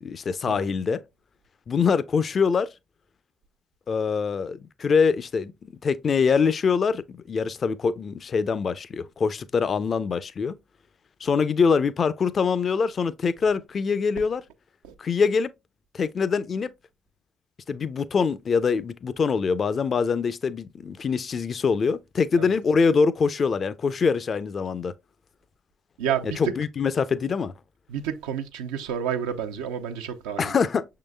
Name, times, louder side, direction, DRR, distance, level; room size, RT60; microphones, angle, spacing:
voice 1, 0.0-1.0 1.7-2.7 3.9-10.6 11.2-14.4 15.0-15.5 15.9-16.7 17.7-24.9 26.2-27.5 30.4-30.9, left 5 dB, 50° left, 0.4 m, -24 dB
voice 2, 26.0-26.5 27.9-30.6, right 8 dB, 80° right, 0.5 m, -30 dB
6.2 x 3.8 x 2.2 m
hypercardioid pair, 50°, 0 cm